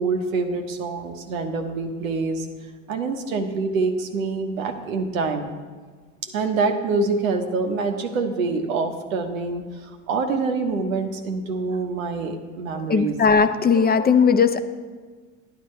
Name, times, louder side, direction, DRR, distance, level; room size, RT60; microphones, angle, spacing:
voice 1, 0.0-2.5 2.9-5.5 6.3-13.2, right 4 dB, 85° right, 5 dB, 1.2 m, -26 dB
voice 2, 12.8-14.6, left 5 dB, 25° left, 9 dB, 0.7 m, -18 dB
11.0 x 10.5 x 3.2 m, 1.4 s
hypercardioid pair, 75°, 39 cm